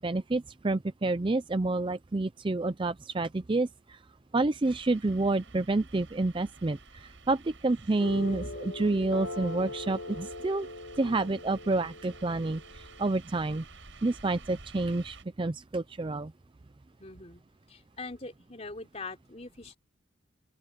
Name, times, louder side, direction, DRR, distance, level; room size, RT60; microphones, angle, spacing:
voice 1, 0.0-4.0 4.3-13.6 14.0-16.3, right 2 dB, 25° right, 0.5 m, -29 dB
sound 1, 4.6-15.2, right 4 dB, 70° right, 6.4 m, -52 dB
sound 2, 8.0-13.1, left 2 dB, 90° left, 1.6 m, -41 dB
voice 2, 17.0-17.4 17.7-19.8, left 3 dB, 30° left, 3.7 m, -42 dB
open air
head